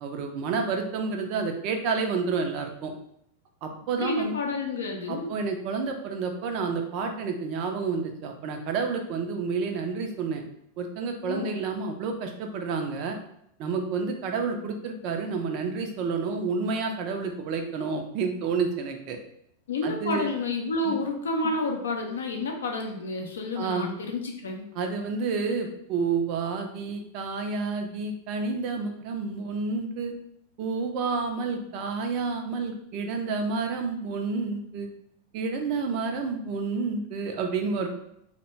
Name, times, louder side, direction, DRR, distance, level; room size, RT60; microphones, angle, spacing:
voice 1, 0.0-2.9 3.6-4.4 5.1-10.4 10.8-13.2 13.6-19.2 19.8-20.3 20.9-21.0 23.5-23.9 24.7-30.1 30.6-34.9 35.3-37.9, right 4 dB, 40° right, 4 dB, 0.4 m, -29 dB
voice 2, 4.0-5.3 11.3-11.5 19.7-24.7, left 2 dB, 65° left, 3 dB, 0.4 m, -30 dB
2.1 x 2.1 x 3.1 m, 0.74 s
figure-of-eight pair, 90°, 0 cm